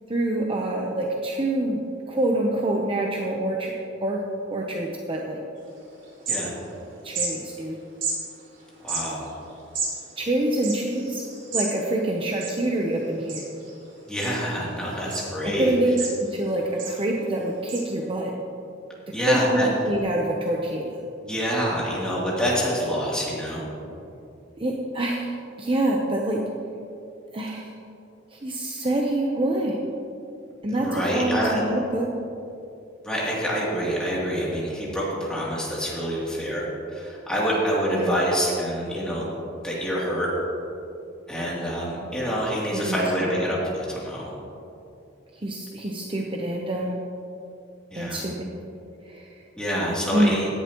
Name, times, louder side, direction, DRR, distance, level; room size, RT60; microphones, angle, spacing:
voice 1, 0.1-1.8 2.1-3.7 4.0-4.2 4.5-5.4 7.0-7.8 10.2-11.2 11.5-13.5 15.5-15.9 16.2-18.3 19.2-20.9 24.6-26.4 27.3-27.7 28.3-29.8 30.6-32.1 37.9-38.2 42.7-43.3 45.4-47.0 47.9-48.5 49.1-49.3 50.1-50.4, right 1 dB, 30° right, -1 dB, 0.8 m, -26 dB
sound 1, 5.7-5.8 6.0-6.8 7.1-7.3 8.0-8.2 8.8-11.7 12.0-12.1 12.3-12.9 13.3-13.7 14.2-14.7 15.1-15.2 15.7-16.4 16.8-17.0 17.7-17.8, right 4 dB, 85° right, 3.2 m, -31 dB
voice 2, 8.8-9.3 14.1-15.7 19.1-19.7 21.2-23.6 30.7-31.6 33.0-39.3 39.6-40.3 41.3-44.3 47.9-48.2 49.6-50.5, equal, 5° left, -7 dB, 2.9 m, -26 dB
17.0 x 11.0 x 3.0 m, 2.7 s
head